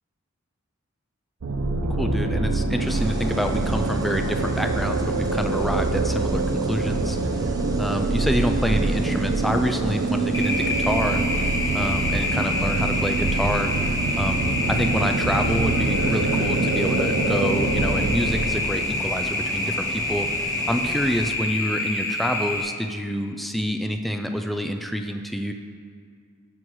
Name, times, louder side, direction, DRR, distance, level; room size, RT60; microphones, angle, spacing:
sound 1, 1.4-18.9, right 3 dB, 85° right, 0.6 m, -25 dB
voice 1, 2.0-7.5 7.8-13.7 14.2-25.5, equal, ahead, 5 dB, 0.4 m, -27 dB
sound 2, 2.9-21.3, right 1 dB, 20° right, 0.7 m, -36 dB
sound 3, 10.3-22.6, left 2 dB, 15° left, 1.2 m, -27 dB
15.5 x 6.2 x 3.1 m, 2.1 s
head